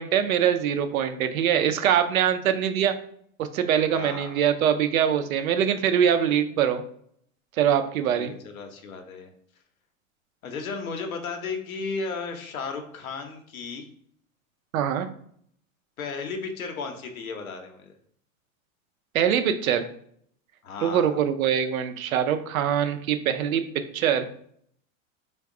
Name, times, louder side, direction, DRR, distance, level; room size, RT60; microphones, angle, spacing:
voice 1, 0.0-2.9 3.4-6.8 7.6-8.3 14.7-15.1 19.1-19.8 20.8-23.6 23.9-24.3, right 9 dB, 80° right, 8 dB, 0.6 m, -23 dB
voice 2, 3.9-4.4 8.1-9.3 10.4-13.9 16.0-17.9 20.6-21.2, left 4 dB, 85° left, 5 dB, 0.8 m, -34 dB
3.5 x 2.2 x 3.6 m, 0.65 s
hypercardioid pair, 100°, 41 cm